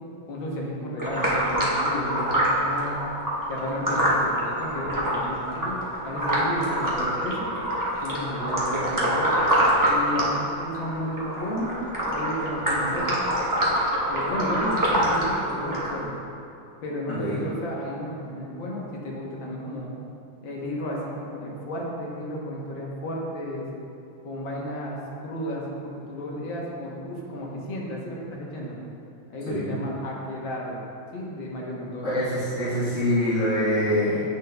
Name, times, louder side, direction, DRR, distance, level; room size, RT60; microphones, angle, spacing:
voice 1, 0.3-3.0 3.5-5.8 6.0-7.5 8.0-9.3 9.9-11.7 12.1-13.2 14.1-16.1 16.8-19.9 20.4-23.7 24.2-28.7 29.3-30.8 31.1-32.1, equal, 70° left, -3 dB, 1.7 m, -33 dB
sound 1, 1.0-16.0, right 1 dB, 25° right, 0.4 m, -25 dB
voice 2, 17.1-17.5 29.5-29.7 32.0-34.2, equal, 35° left, -12 dB, 1.7 m, -25 dB
9.1 x 6.0 x 2.2 m, 2.6 s
omnidirectional pair, 2.2 m